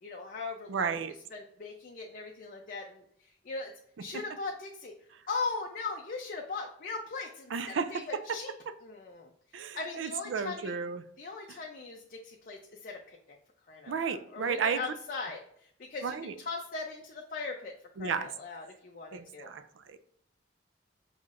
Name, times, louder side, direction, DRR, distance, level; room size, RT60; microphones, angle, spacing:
voice 1, 0.0-1.0 1.3-3.7 4.0-4.9 5.3-8.5 8.8-10.8 11.2-13.2 13.7-17.7 18.0-19.5, left 4 dB, 45° left, 0.5 m, -39 dB
voice 2, 0.7-1.1 7.5-8.0 9.5-11.0 13.9-14.8 16.0-16.3 18.0-18.3 19.1-20.0, right 6 dB, 80° right, 0.4 m, -33 dB
5.7 x 3.1 x 2.5 m
head